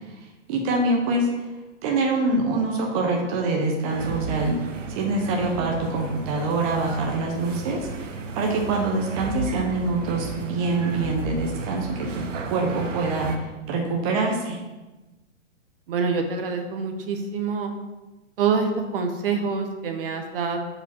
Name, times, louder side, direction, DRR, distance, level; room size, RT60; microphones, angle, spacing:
voice 1, 0.5-1.5 1.8-7.9 8.3-14.6, right 2 dB, 30° right, 0 dB, 0.9 m, -25 dB
sound 1, 3.9-13.4, right 4 dB, 80° right, 1.1 m, -34 dB
voice 2, 15.9-17.7 18.4-20.6, right 5 dB, 50° right, 5 dB, 1.1 m, -26 dB
7.4 x 5.0 x 4.3 m, 1.1 s
hypercardioid pair, 150°, 37 cm